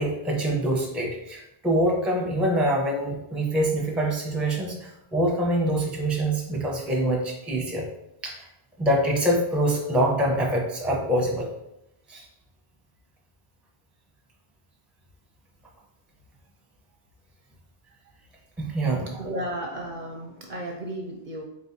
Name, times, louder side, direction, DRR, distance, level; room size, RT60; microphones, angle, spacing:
voice 1, 0.0-7.9 8.2-8.5 8.8-11.5 12.1-12.3 18.6-19.1, right 1 dB, ahead, -1 dB, 0.5 m, -25 dB
voice 2, 19.2-21.4, right 1 dB, 60° right, 1 dB, 0.6 m, -34 dB
4.0 x 3.7 x 2.6 m, 0.83 s
omnidirectional pair, 1.1 m